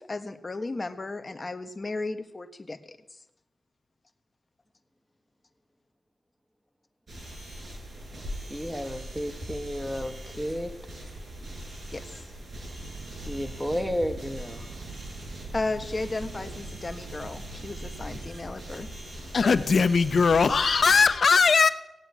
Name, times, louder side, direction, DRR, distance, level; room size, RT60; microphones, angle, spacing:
voice 1, 0.0-3.2 11.9-12.3 15.5-18.9, left 2 dB, 35° left, 7 dB, 1.4 m, -34 dB
sound 1, 7.1-21.1, right 1 dB, 50° right, 6.6 m, -41 dB
voice 2, 8.5-10.8 13.2-14.6, equal, ahead, 7 dB, 1.5 m, -32 dB
sound 2, 12.8-18.3, right 5 dB, 80° right, 1.0 m, -45 dB
voice 3, 19.3-21.7, left 5 dB, 60° left, 11 dB, 0.9 m, -20 dB
17.5 x 7.6 x 9.6 m, 0.95 s
wide cardioid pair, 85°, 0 cm